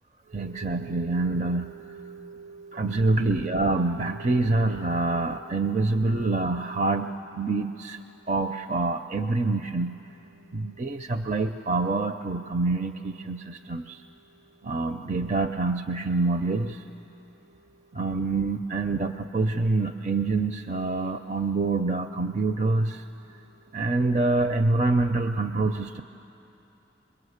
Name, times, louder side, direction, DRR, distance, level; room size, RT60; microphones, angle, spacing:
voice 1, 0.3-8.0 8.3-10.0 10.5-14.0 14.6-16.8 17.9-23.0 23.7-26.0, right 3 dB, 40° right, 7 dB, 0.5 m, -26 dB
27.0 x 22.5 x 8.1 m, 2.9 s
head